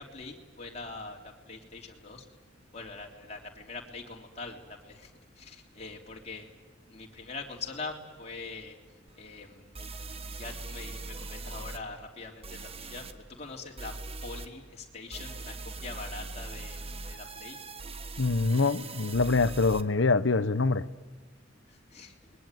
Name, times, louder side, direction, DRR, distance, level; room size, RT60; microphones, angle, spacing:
voice 1, 0.0-2.2 2.7-5.1 5.4-6.5 6.9-8.8 9.2-9.7 10.3-13.9 14.2-15.5 15.8-17.6 21.9-22.1, left 3 dB, 35° left, 3.3 m, -43 dB
sound 1, 9.1-9.2 9.7-11.8 12.4-13.1 13.8-14.5 15.1-19.8, right 3 dB, 30° right, 1.3 m, -41 dB
voice 2, 18.2-20.8, left 3 dB, 75° left, 1.0 m, -25 dB
29.5 x 21.5 x 9.2 m
head